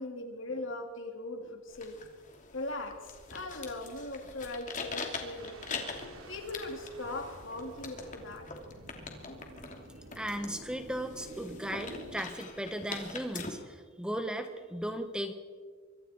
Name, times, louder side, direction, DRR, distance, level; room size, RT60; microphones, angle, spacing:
voice 1, 0.0-2.0 2.5-3.0 3.3-5.6 6.1-8.5, left 2 dB, 65° left, 4 dB, 2.9 m, -39 dB
sound 1, 1.7-13.5, left 4 dB, 40° left, 2.9 m, -43 dB
sound 2, 2.9-12.2, equal, 55° right, 2.6 m, -53 dB
sound 3, 5.4-13.2, right 2 dB, 85° right, 3.1 m, -54 dB
voice 2, 10.1-15.3, right 1 dB, 5° right, 7 dB, 1.2 m, -36 dB
25.0 x 24.5 x 4.5 m, 1.6 s
head